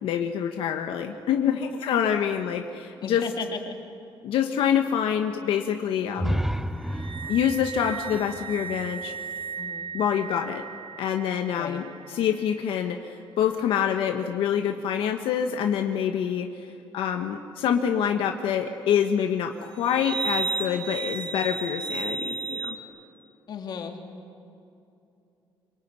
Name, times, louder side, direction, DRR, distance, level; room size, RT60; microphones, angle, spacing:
voice 1, 0.0-3.2 4.2-6.4 7.3-9.1 9.9-10.6 11.0-16.7 16.9-22.7, left 8 dB, 90° left, 4 dB, 1.4 m, -26 dB
voice 2, 3.0-3.8 9.6-9.9 11.5-11.8 23.5-24.0, left 6 dB, 55° left, 4 dB, 2.9 m, -35 dB
sound 1, 6.2-10.0, equal, 5° right, 0.6 m, -32 dB
sound 2, 6.9-13.1 19.8-22.8, right 5 dB, 75° right, 1.6 m, -35 dB
25.5 x 22.0 x 9.7 m, 2.7 s
cardioid pair, 140°, 9 cm